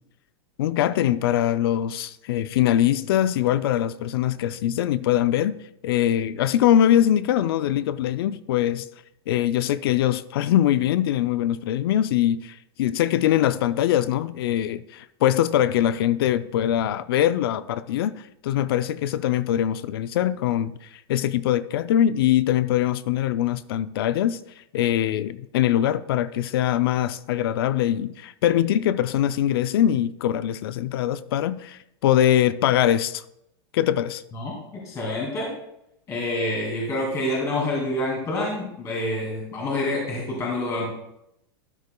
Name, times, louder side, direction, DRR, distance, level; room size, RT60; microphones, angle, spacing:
voice 1, 0.6-5.6 5.8-8.9 9.3-24.4 24.7-33.2 33.7-34.2, left 11 dB, 65° left, 0.4 m, -22 dB
voice 2, 34.8-35.5 36.1-40.9, left 1 dB, 20° left, 2.3 m, -27 dB
13.0 x 9.5 x 2.2 m
supercardioid pair, 160°, 14 cm